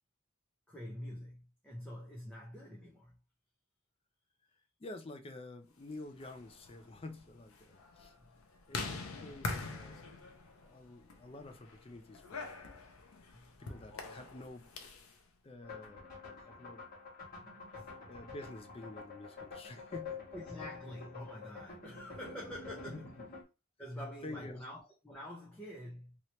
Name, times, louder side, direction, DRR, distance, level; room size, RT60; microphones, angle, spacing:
voice 1, 0.7-3.2 8.2-8.3 13.3-13.5 17.4-17.8 20.3-23.2 23.8-26.2, left 1 dB, 5° left, 0.8 m, -47 dB
voice 2, 4.8-8.2 8.7-10.1 10.5-12.8 13.6-14.7 15.4-16.8 18.1-20.2 22.9-23.3 24.0-24.6, left 2 dB, 25° left, 0.4 m, -49 dB
sound 1, 6.0-15.1, left 3 dB, 85° left, 0.6 m, -44 dB
sound 2, 15.6-23.4, left 4 dB, 45° left, 1.5 m, -48 dB
2.9 x 2.9 x 3.1 m
head